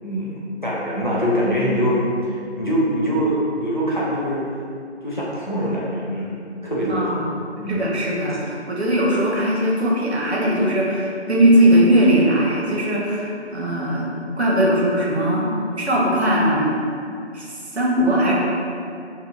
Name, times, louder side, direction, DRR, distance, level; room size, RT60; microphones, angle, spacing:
voice 1, 0.0-2.0 2.3-4.4 5.0-7.2 7.6-7.9, equal, 45° left, -7 dB, 0.4 m, -23 dB
voice 2, 6.9-7.3 7.7-15.5 15.8-16.8 17.3-18.3, right 1 dB, 65° right, -4 dB, 0.6 m, -19 dB
2.7 x 2.1 x 2.4 m, 2.4 s
figure-of-eight pair, 170°, 35 cm